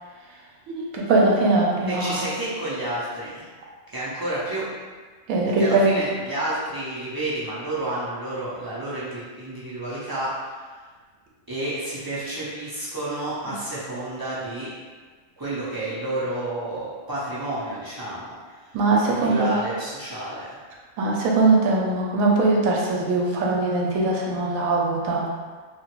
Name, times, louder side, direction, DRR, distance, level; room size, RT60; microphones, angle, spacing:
voice 1, 0.7-2.2 5.3-6.0 18.7-19.5 21.0-25.2, right 3 dB, 75° right, -2 dB, 1.0 m, -21 dB
voice 2, 1.9-3.5 3.9-4.6 5.6-10.7 11.5-14.7 15.4-18.8 19.1-20.6, right 1 dB, 30° right, -11 dB, 0.4 m, -30 dB
2.9 x 2.4 x 3.0 m, 1.5 s
omnidirectional pair, 1.4 m